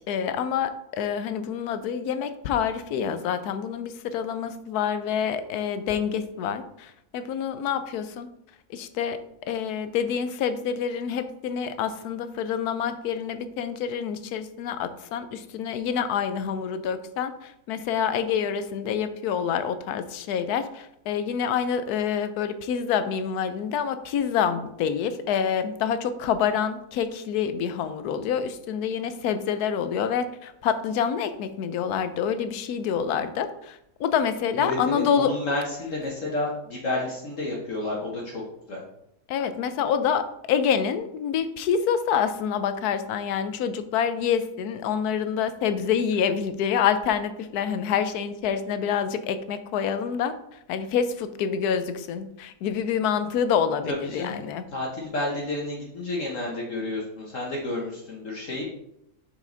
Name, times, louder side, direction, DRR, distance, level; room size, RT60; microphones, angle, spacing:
voice 1, 0.1-8.3 8.7-35.3 39.3-50.4 50.7-54.6, left 7 dB, 75° left, 11 dB, 1.1 m, -27 dB
voice 2, 34.6-38.4 38.7-38.8 53.9-54.4 54.7-58.6, left 2 dB, 55° left, -3 dB, 1.5 m, -30 dB
5.9 x 5.8 x 3.9 m, 0.80 s
omnidirectional pair, 1.7 m